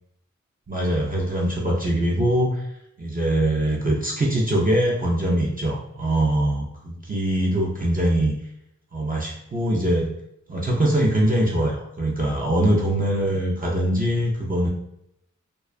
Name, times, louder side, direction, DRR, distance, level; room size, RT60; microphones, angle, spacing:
voice 1, 0.7-2.7 3.0-8.3 8.9-10.1 10.5-14.7, right 1 dB, 30° right, -3 dB, 0.4 m, -22 dB
2.3 x 2.2 x 2.4 m, 0.78 s
wide cardioid pair, 70°, 30 cm